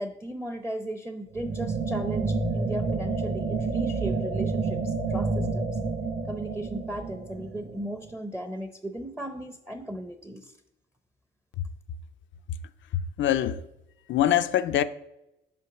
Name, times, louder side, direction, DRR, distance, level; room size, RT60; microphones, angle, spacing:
voice 1, 0.0-5.7 6.3-10.5, right 1 dB, 5° right, 0.7 m, -36 dB
sound 1, 1.3-8.1, right 4 dB, 45° right, 1.0 m, -29 dB
voice 2, 13.2-13.6 14.1-14.8, left 11 dB, 70° left, 0.5 m, -23 dB
5.8 x 4.7 x 6.0 m
cardioid pair, 90°, 20 cm